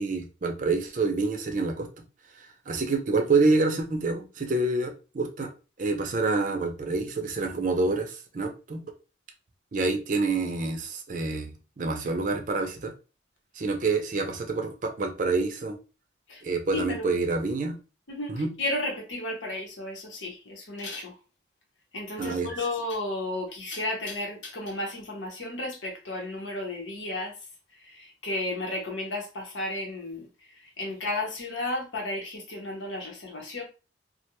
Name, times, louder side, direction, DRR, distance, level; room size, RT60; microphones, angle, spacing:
voice 1, 0.0-1.9 2.7-5.5 5.8-8.8 9.7-12.9 13.6-15.8 16.4-17.8 18.3-18.5 22.2-22.5, right 3 dB, 45° right, 0.5 m, -27 dB
voice 2, 16.7-17.1 18.1-21.2 21.9-27.4 27.8-30.3 30.5-33.6, left 2 dB, 80° left, 0.9 m, -33 dB
2.4 x 2.2 x 2.8 m
head